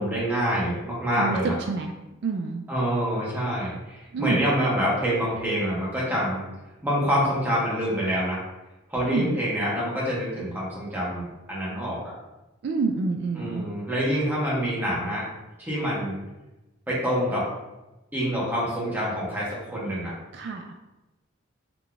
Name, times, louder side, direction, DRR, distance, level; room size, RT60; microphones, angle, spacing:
voice 1, 0.0-1.5 2.7-6.5 6.8-8.4 8.9-12.1 13.3-15.3 15.6-16.2 16.9-17.5 18.1-20.1, equal, 10° right, -7 dB, 1.4 m, -26 dB
voice 2, 2.2-2.6 4.1-4.4 9.1-9.4 12.6-13.6 20.3-20.7, right 4 dB, 60° right, 4 dB, 0.3 m, -27 dB
4.0 x 3.2 x 3.4 m, 1.0 s
head